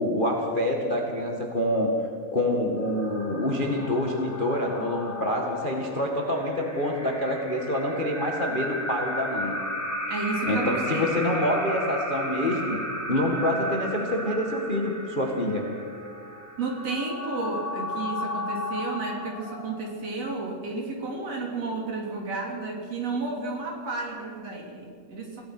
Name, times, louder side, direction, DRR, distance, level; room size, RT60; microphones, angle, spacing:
voice 1, 0.0-1.9 2.3-9.6 10.5-12.8 13.1-15.7, left 1 dB, 20° left, 1 dB, 1.5 m, -26 dB
sound 1, 2.7-20.0, equal, 5° left, 3.1 m, -34 dB
voice 2, 10.1-11.3 16.6-25.4, right 3 dB, 50° right, 0 dB, 4.2 m, -32 dB
27.5 x 17.0 x 6.1 m, 2.1 s
omnidirectional pair, 3.7 m